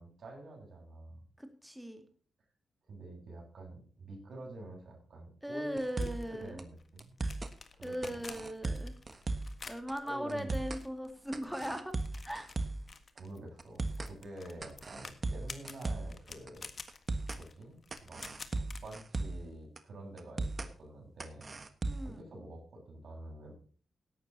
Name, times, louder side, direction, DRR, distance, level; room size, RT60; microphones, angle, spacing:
voice 1, 0.0-1.2 2.9-6.1 6.4-7.2 7.7-8.2 10.0-10.5 13.1-16.7 17.3-18.2 18.5-21.5 22.0-23.5, right 1 dB, 60° right, 1 dB, 8.0 m, -48 dB
voice 2, 1.4-2.0 5.4-6.6 7.8-8.9 9.7-11.9 12.2-12.5 21.9-22.2, equal, ahead, 6 dB, 2.5 m, -39 dB
sound 1, 5.8-6.3 6.6-6.7 7.0-7.5 8.0-9.6 9.9-10.0 10.3-10.8 11.3-12.9 13.2-13.3 13.6-14.1 14.6-16.2 16.5-16.6 16.9-17.4 17.9-19.5 19.8-19.9 20.2-20.7 21.2-22.2, right 2 dB, 35° right, 1.4 m, -37 dB
sound 2, 6.0-19.0, left 4 dB, 45° left, 1.6 m, -51 dB
17.0 x 12.0 x 2.9 m, 0.41 s
cardioid pair, 105°, 0 cm